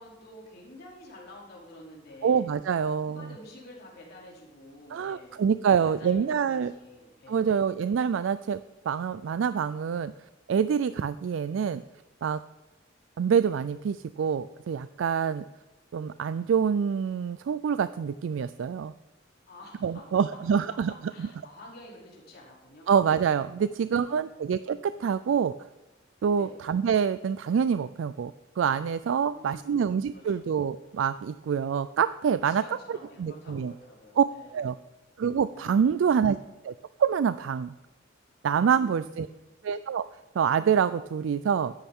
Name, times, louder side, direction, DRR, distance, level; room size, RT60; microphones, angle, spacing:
voice 1, 0.0-2.5 3.0-7.5 19.5-20.1 20.9-22.9 23.7-24.5 26.3-26.6 29.2-30.4 32.4-34.6 35.5-36.2 38.5-39.4, left 1 dB, 55° left, -4 dB, 3.1 m, -49 dB
voice 2, 2.2-3.3 4.9-6.7 7.3-8.6 8.9-10.1 10.5-11.8 12.2-12.4 13.2-15.4 15.9-18.9 19.8-20.9 21.2-21.3 22.9-25.5 26.2-32.6 32.9-33.7 34.2-34.3 34.5-34.7 35.2-36.4 36.6-36.7 37.0-37.7 38.4-39.3 39.6-40.0 40.4-41.7, right 7 dB, 80° right, 14 dB, 0.3 m, -26 dB
13.5 x 10.5 x 3.6 m, 1.0 s
head